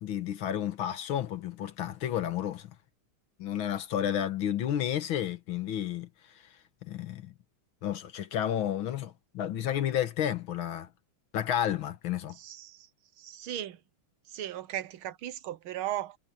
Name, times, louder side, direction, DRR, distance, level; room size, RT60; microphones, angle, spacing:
voice 1, 0.0-2.7 3.4-6.1 6.8-7.3 7.8-10.9 11.3-12.4, left 10 dB, 70° left, 1.9 m, -31 dB
voice 2, 12.4-12.9 13.2-13.8 14.3-16.2, right 12 dB, 75° right, 1.7 m, -37 dB
omnidirectional pair, 2.4 m